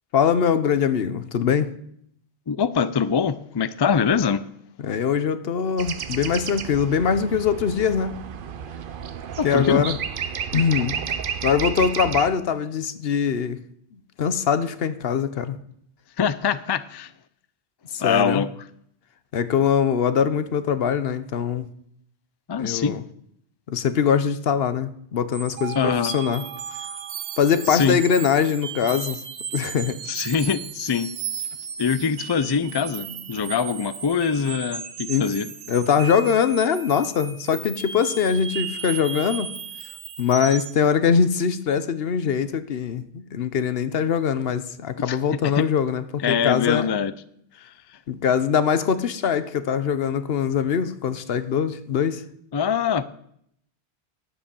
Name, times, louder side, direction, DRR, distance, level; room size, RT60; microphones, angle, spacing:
voice 1, 0.1-1.7 4.8-8.2 9.4-10.0 10.5-11.0 11.4-13.6 14.2-15.6 17.9-18.4 19.3-21.7 22.6-23.0 23.7-26.4 27.4-29.2 29.5-30.0 35.1-35.3 35.7-39.5 40.2-46.9 48.1-52.2, left 7 dB, 70° left, 13 dB, 1.0 m, -22 dB
voice 2, 2.5-4.5 9.4-9.8 16.2-17.1 18.0-18.5 22.5-23.0 25.7-26.1 27.7-28.0 30.1-31.1 31.8-35.5 45.1-45.2 45.5-45.6 46.2-47.1 47.6-47.7 52.5-53.0, left 6 dB, 40° left, 15 dB, 0.3 m, -23 dB
sound 1, 5.8-12.3, right 8 dB, 60° right, 0.8 m, -31 dB
sound 2, 25.3-40.8, right 7 dB, 75° right, 1.2 m, -35 dB
10.0 x 7.9 x 6.9 m, 0.69 s
omnidirectional pair, 1.1 m